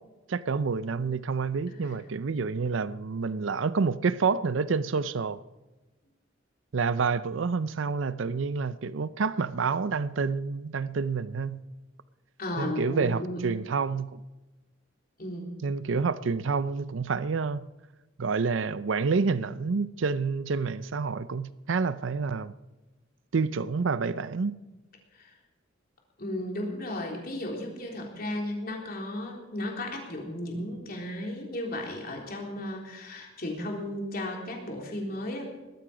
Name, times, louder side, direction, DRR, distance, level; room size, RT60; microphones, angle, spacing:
voice 1, 0.3-5.4 6.7-11.6 12.6-14.2 15.6-17.7 18.2-22.5 23.3-24.6, right 4 dB, 75° right, 0.5 m, -28 dB
voice 2, 12.4-13.4 15.2-15.6 25.1-25.4 26.2-35.5, left 1 dB, 50° left, 3.7 m, -35 dB
19.5 x 13.5 x 5.1 m
head